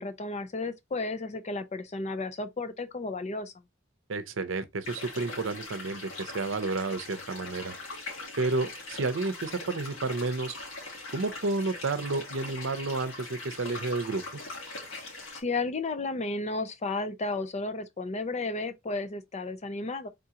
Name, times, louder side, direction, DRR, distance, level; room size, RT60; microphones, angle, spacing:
voice 1, 0.0-3.5 15.3-20.1, left 3 dB, 35° left, 0.5 m, -33 dB
voice 2, 4.1-7.7 8.4-10.5 11.1-14.2, right 3 dB, 70° right, 0.6 m, -31 dB
sound 1, 4.8-15.4, left 2 dB, 80° left, 2.0 m, -41 dB
3.7 x 2.9 x 3.6 m
head